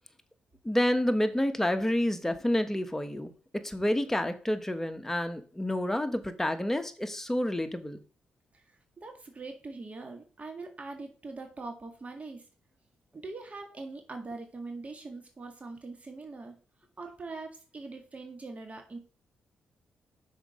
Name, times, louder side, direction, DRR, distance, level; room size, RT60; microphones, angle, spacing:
voice 1, 0.6-3.3 3.6-8.0, left 1 dB, 10° left, 8 dB, 1.2 m, -29 dB
voice 2, 9.0-12.4 13.1-16.6 17.0-19.0, right 3 dB, 35° right, 4 dB, 1.9 m, -42 dB
6.2 x 4.8 x 5.0 m, 0.36 s
supercardioid pair, 60°, 4 cm